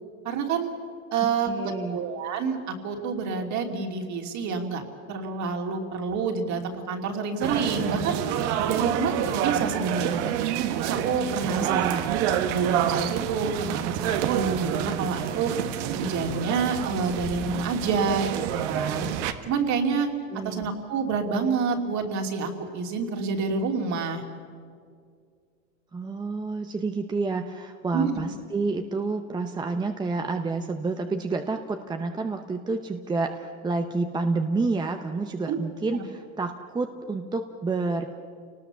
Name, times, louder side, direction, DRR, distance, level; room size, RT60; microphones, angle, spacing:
voice 1, 0.2-0.7 1.1-4.8 5.1-8.2 8.6-10.3 10.8-11.8 12.4-15.5 15.9-19.1 19.4-20.1 20.4-24.2 27.9-28.1 35.5-35.6, right 5 dB, 40° right, 3 dB, 2.8 m, -28 dB
voice 2, 1.2-2.0 11.6-12.2 20.3-20.7 25.9-38.1, right 3 dB, 10° right, 6 dB, 0.7 m, -29 dB
sound 1, 7.4-19.3, right 10 dB, 60° right, 1.4 m, -28 dB
28.0 x 19.0 x 6.9 m, 2.2 s
supercardioid pair, 130°, 42 cm